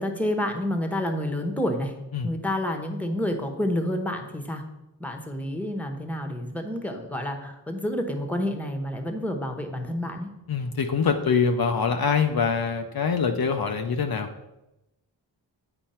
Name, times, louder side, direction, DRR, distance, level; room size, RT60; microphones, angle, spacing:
voice 1, 0.0-1.9 2.2-4.6 5.0-10.3, left 1 dB, 5° left, 4 dB, 1.1 m, -29 dB
voice 2, 10.5-14.3, left 5 dB, 55° left, 5 dB, 0.6 m, -24 dB
9.0 x 4.4 x 4.3 m, 0.96 s
cardioid pair, 60°, 43 cm